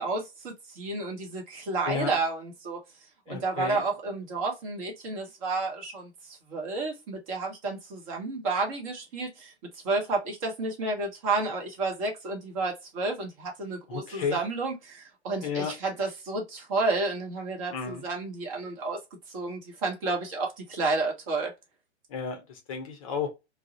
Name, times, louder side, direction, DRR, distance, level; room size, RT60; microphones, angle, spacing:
voice 1, 0.0-2.8 3.3-9.5 9.8-19.0 19.3-21.5, right 3 dB, 30° right, 0.8 m, -31 dB
voice 2, 3.3-3.8 13.9-14.4 15.4-15.7 17.7-18.0 22.1-23.3, left 6 dB, 30° left, 0.5 m, -32 dB
2.3 x 2.0 x 2.7 m
figure-of-eight pair, 110°, 34 cm